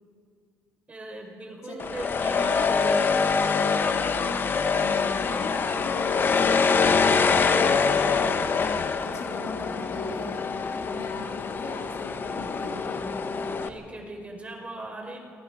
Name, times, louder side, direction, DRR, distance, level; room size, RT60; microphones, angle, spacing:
voice 1, 0.9-3.3 13.6-15.2, right 1 dB, 25° right, 2 dB, 4.7 m, -39 dB
sound 1, 1.8-13.7, left 5 dB, 45° left, 1.2 m, -25 dB
voice 2, 4.7-8.4 8.9-10.5 10.8-13.0, left 2 dB, 70° left, 0 dB, 3.6 m, -38 dB
28.5 x 20.0 x 5.0 m, 2.3 s
cardioid pair, 90°, 5 cm